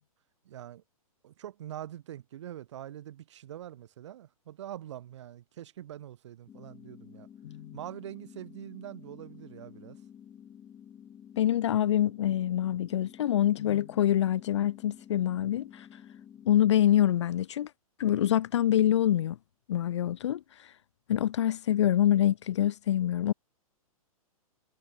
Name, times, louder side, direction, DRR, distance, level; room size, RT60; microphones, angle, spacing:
voice 1, 0.4-0.8 1.2-7.3 7.7-10.0, right 12 dB, 50° right, 1.4 m, -44 dB
sound 1, 6.5-16.5, left 9 dB, 15° left, 2.5 m, -51 dB
voice 2, 7.4-7.8 11.4-15.9 16.5-17.7 18.0-19.4 19.7-20.4 21.1-23.3, left 11 dB, 50° left, 0.4 m, -25 dB
figure-of-eight pair, 115°, 19 cm